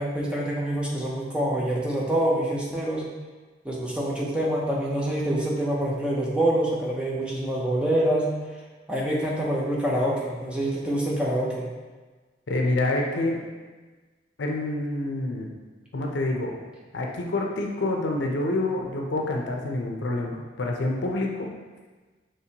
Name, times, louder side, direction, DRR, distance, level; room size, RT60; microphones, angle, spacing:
voice 1, 0.0-3.1 3.6-8.3 8.9-11.7, right 1 dB, 5° right, -5 dB, 0.7 m, -26 dB
voice 2, 12.5-13.4 14.4-15.5 15.9-16.6 16.9-21.5, left 2 dB, 75° left, 1 dB, 0.6 m, -27 dB
5.9 x 3.1 x 2.9 m, 1.3 s
head